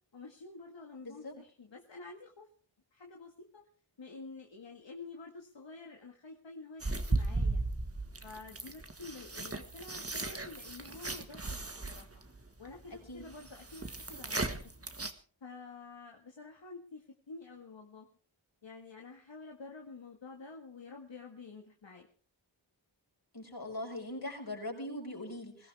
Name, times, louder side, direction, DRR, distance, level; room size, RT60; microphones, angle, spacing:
voice 1, 0.1-2.5 2.9-3.6 4.0-7.6 8.2-12.1 12.6-14.6 15.4-18.1 18.6-22.1, left 3 dB, 70° left, 1 dB, 1.9 m, -49 dB
sound 1, 6.8-15.1, right 2 dB, 30° right, 1.6 m, -36 dB
voice 2, 23.3-25.7, left 1 dB, 50° left, 1 dB, 5.9 m, -41 dB
21.0 x 17.0 x 3.5 m, 0.41 s
wide cardioid pair, 75°, 46 cm